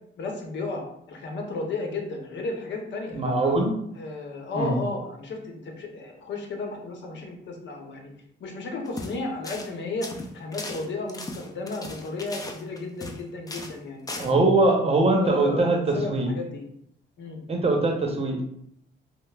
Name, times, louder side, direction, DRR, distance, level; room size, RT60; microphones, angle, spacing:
voice 1, 0.2-3.5 3.9-8.1 8.4-14.5 15.1-16.7 17.2-17.4, left 3 dB, 65° left, 2 dB, 0.8 m, -33 dB
voice 2, 3.1-3.7 4.5-4.8 14.2-16.3 17.5-18.4, right 2 dB, 30° right, 2 dB, 0.8 m, -22 dB
sound 1, 8.8-9.1 9.4-9.7 10.0-13.2 13.5-13.8 14.1-14.3, left 2 dB, 20° left, 0.5 m, -37 dB
5.2 x 2.0 x 2.3 m, 0.72 s
cardioid pair, 90°, 20 cm